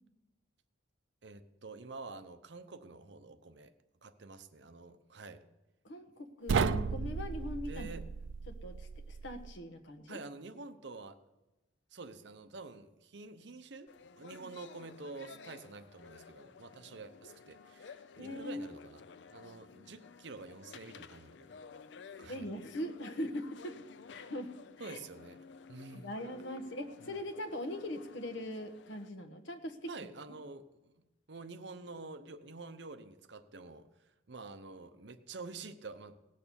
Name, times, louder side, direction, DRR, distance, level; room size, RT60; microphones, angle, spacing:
voice 1, 1.2-3.7 4.0-5.4 7.6-8.1 10.1-11.2 11.9-19.0 19.3-21.5 22.0-22.5 24.8-26.1 29.9-36.2, right 3 dB, 65° right, 10 dB, 0.8 m, -48 dB
voice 2, 5.8-7.9 8.6-10.2 14.4-14.5 18.2-18.7 22.3-23.7 24.1-24.5 24.8-25.0 25.9-29.9, left 1 dB, 85° left, 5 dB, 1.3 m, -41 dB
sound 1, 6.5-9.5, right 5 dB, 85° right, 0.4 m, -34 dB
sound 2, 13.9-29.1, left 5 dB, 65° left, 0.5 m, -54 dB
18.0 x 6.6 x 7.0 m, 1.0 s
head